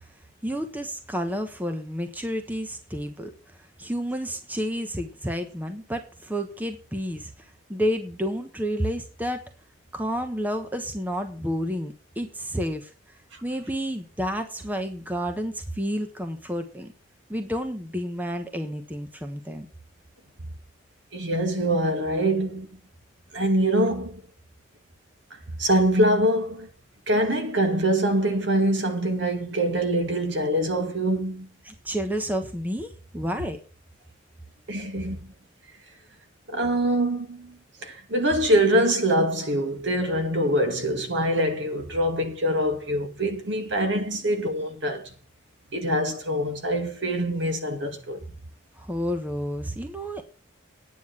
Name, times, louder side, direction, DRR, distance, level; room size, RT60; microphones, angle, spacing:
voice 1, 0.4-9.5 9.9-12.9 13.4-16.9 17.3-19.7 31.6-33.6 48.8-50.2, equal, 10° right, 1.2 m, -30 dB
voice 2, 21.1-22.7 23.3-24.2 25.6-26.7 27.1-31.5 34.7-35.3 36.5-45.1 45.7-48.2, right 1 dB, 70° right, 2.1 m, -24 dB
9.7 x 9.4 x 5.9 m
head